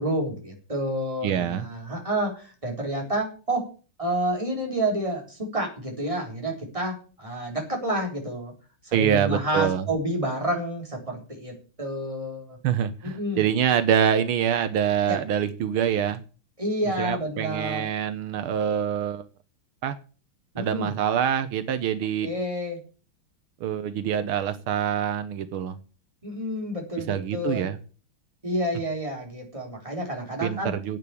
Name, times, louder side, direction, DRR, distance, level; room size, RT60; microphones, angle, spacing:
voice 1, 0.0-3.6 4.0-8.5 8.8-12.6 13.0-13.4 15.1-15.2 16.6-17.9 20.5-21.0 22.2-22.8 26.2-27.7 28.4-30.7, right 1 dB, 15° right, 0 dB, 4.3 m, -29 dB
voice 2, 1.2-1.6 8.9-9.9 12.6-16.2 17.0-19.2 19.8-20.0 20.6-22.3 23.6-25.8 27.1-27.8 30.4-31.0, right 9 dB, 80° right, 11 dB, 1.8 m, -25 dB
10.5 x 8.7 x 8.4 m, 0.37 s
omnidirectional pair, 2.3 m